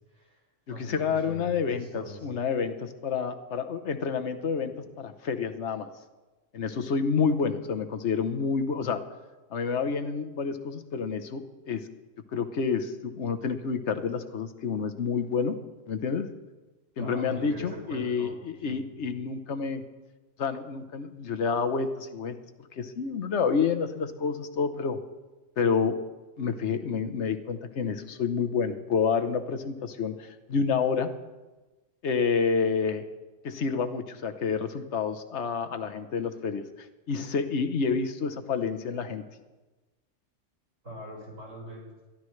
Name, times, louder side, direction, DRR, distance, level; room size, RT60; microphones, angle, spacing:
voice 1, 0.1-0.4 0.7-2.3 17.0-18.4 18.6-18.9 40.8-41.9, equal, 80° right, -2 dB, 5.5 m, -41 dB
voice 2, 0.7-5.9 6.5-9.0 9.5-11.9 12.3-15.6 15.9-16.3 17.0-19.8 20.4-22.4 22.7-25.0 25.6-26.0 26.4-31.1 32.0-33.0 33.4-36.7 37.1-39.2, left 5 dB, 65° left, 8 dB, 1.3 m, -29 dB
22.0 x 14.5 x 3.3 m, 1.2 s
omnidirectional pair, 1.3 m